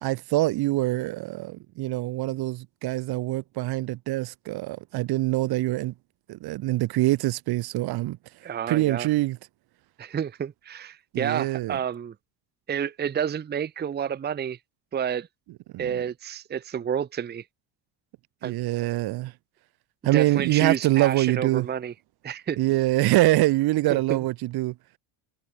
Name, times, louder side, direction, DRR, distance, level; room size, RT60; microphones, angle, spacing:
voice 1, 0.0-5.9 6.3-8.2 8.7-9.4 11.1-11.8 15.7-16.0 18.4-19.3 20.0-21.7 22.6-24.7, right 18 dB, 55° right, 1.5 m, -24 dB
voice 2, 8.4-9.1 10.0-12.1 12.7-14.6 14.9-15.3 15.8-17.4 18.4-18.6 20.1-21.9 22.2-22.6 23.9-24.2, right 8 dB, 20° right, 0.9 m, -29 dB
cardioid pair, 140°, 44 cm